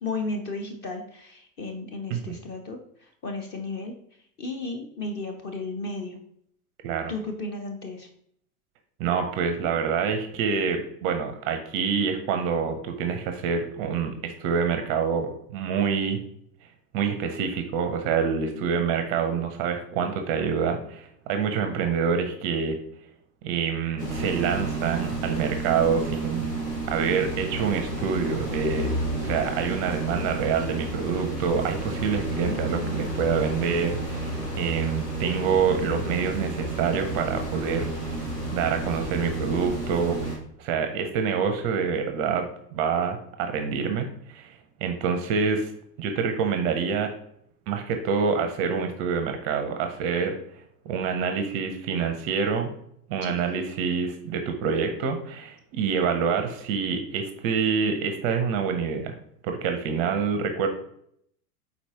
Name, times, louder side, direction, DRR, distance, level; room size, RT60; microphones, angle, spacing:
voice 1, 0.0-3.9 4.4-6.2 7.1-8.1 18.7-18.9 32.4-33.2 34.4-34.6 53.2-53.3, left 2 dB, 25° left, 4 dB, 0.4 m, -34 dB
voice 2, 9.0-16.2 16.9-22.8 23.4-26.5 26.9-28.9 29.2-44.5 44.8-45.7 46.0-47.1 47.7-50.3 50.9-52.7 53.1-59.1 59.4-60.7, right 6 dB, 30° right, 6 dB, 0.5 m, -26 dB
sound 1, 24.0-40.4, right 2 dB, 85° left, 1.6 m, -31 dB
4.5 x 4.0 x 2.8 m, 0.70 s
hypercardioid pair, 95°, 47 cm